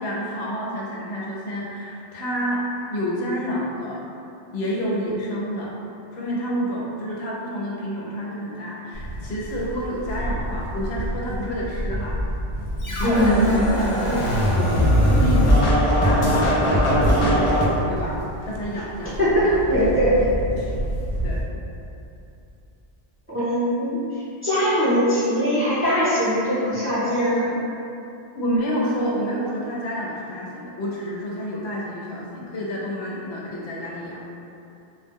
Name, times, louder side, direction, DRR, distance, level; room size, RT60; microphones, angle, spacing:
voice 1, 0.0-2.6 2.9-4.0 4.5-5.7 6.1-12.2 13.0-15.4 15.9-16.5 16.9-17.6 17.9-18.2 18.4-19.2 19.4-19.6 20.6-20.7 21.2-21.4 28.3-34.2, equal, 90° left, -4 dB, 0.8 m, -29 dB
Livestock farm animals working animals, 8.9-21.4, right 1 dB, 65° right, 0.8 m, -31 dB
Scratching (performance technique), 12.8-17.7, equal, 50° left, 0.4 m, -19 dB
voice 2, 13.0-13.7 19.2-20.1 23.3-24.0 24.4-27.5, equal, 15° right, -12 dB, 0.5 m, -21 dB
2.1 x 2.0 x 3.5 m, 2.8 s
omnidirectional pair, 1.0 m